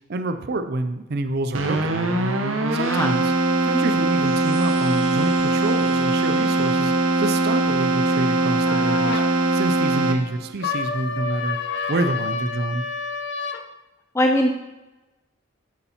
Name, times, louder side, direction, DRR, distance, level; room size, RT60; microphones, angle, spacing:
voice 1, 0.1-1.9 2.7-3.3 3.6-6.9 7.2-9.2 9.5-11.6 11.9-12.8, right 2 dB, 55° right, 9 dB, 0.5 m, -27 dB
Keyboard (musical), 1.5-10.5, right 2 dB, 85° right, 0.9 m, -21 dB
Chime, 3.9-8.5, right 3 dB, 30° right, 3.2 m, -45 dB
sound 1, 8.6-9.3 10.6-13.6, left 5 dB, 60° left, 0.7 m, -29 dB
voice 2, 14.1-14.5, left 1 dB, 15° left, 3 dB, 0.5 m, -20 dB
12.5 x 8.3 x 2.9 m, 1.1 s
head